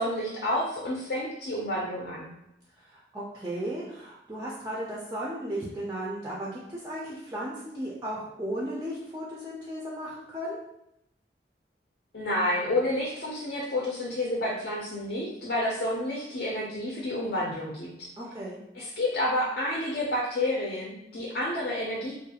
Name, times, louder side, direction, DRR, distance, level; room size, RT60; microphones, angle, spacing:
voice 1, 0.0-2.3 12.1-18.1 18.7-22.2, left 1 dB, 55° left, -4 dB, 0.5 m, -29 dB
voice 2, 2.9-10.6 18.2-18.6, right 1 dB, 15° right, -6 dB, 0.4 m, -35 dB
2.3 x 2.2 x 2.8 m, 0.84 s
head